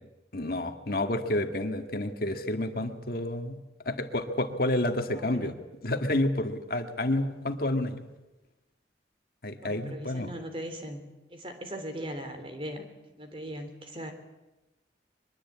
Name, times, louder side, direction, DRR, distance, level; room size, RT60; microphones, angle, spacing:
voice 1, 0.3-3.6 3.9-5.5 5.8-8.1 9.4-10.3, left 1 dB, 55° left, 6 dB, 1.8 m, -29 dB
voice 2, 5.0-5.6 9.6-11.0 11.3-12.8 13.2-14.1, equal, 30° right, 6 dB, 3.3 m, -39 dB
23.0 x 22.0 x 8.6 m, 1.0 s
head